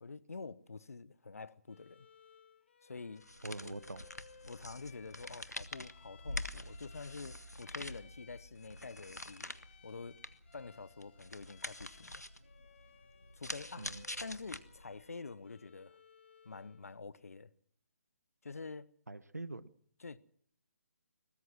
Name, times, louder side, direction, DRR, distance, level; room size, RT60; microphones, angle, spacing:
voice 1, 0.0-2.1 2.8-3.2 3.6-3.8 4.4-9.5 9.8-10.2 10.5-12.2 13.3-16.0 16.4-17.5 18.4-18.9 20.0-20.2, left 4 dB, 65° left, 1.2 m, -47 dB
Bowed string instrument, 1.7-16.9, left 6 dB, 45° left, 3.1 m, -62 dB
sound 1, 3.2-15.0, left 1 dB, 90° left, 1.5 m, -46 dB
voice 2, 3.4-4.0 13.8-14.0 19.1-19.7, right 2 dB, 80° right, 1.5 m, -44 dB
22.5 x 19.5 x 6.2 m
figure-of-eight pair, 140°, 9 cm